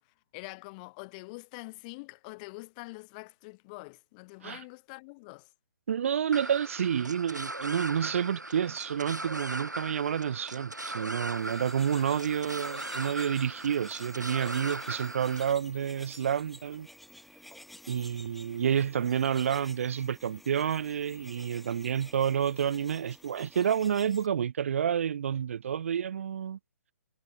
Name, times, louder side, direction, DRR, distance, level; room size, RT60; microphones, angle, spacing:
voice 1, 0.0-5.5 8.7-8.8 12.0-12.2, left 28 dB, 25° left, 2.4 m, -45 dB
voice 2, 5.9-16.9 17.9-26.6, right 8 dB, 50° right, 0.3 m, -29 dB
sound 1, 6.3-15.5, right 2 dB, 85° right, 1.7 m, -39 dB
sound 2, 11.0-24.3, left 1 dB, ahead, 1.1 m, -52 dB
figure-of-eight pair, 135°, 9 cm